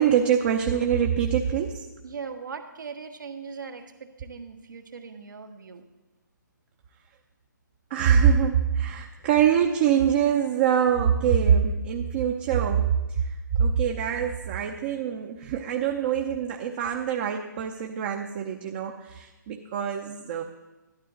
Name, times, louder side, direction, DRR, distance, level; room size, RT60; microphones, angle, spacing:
voice 1, 0.0-1.9 7.9-20.4, right 8 dB, 35° right, 2 dB, 0.8 m, -24 dB
voice 2, 2.0-5.9, right 5 dB, 70° right, 5 dB, 1.5 m, -39 dB
12.0 x 12.0 x 3.9 m, 1.1 s
hypercardioid pair, 145°, 11 cm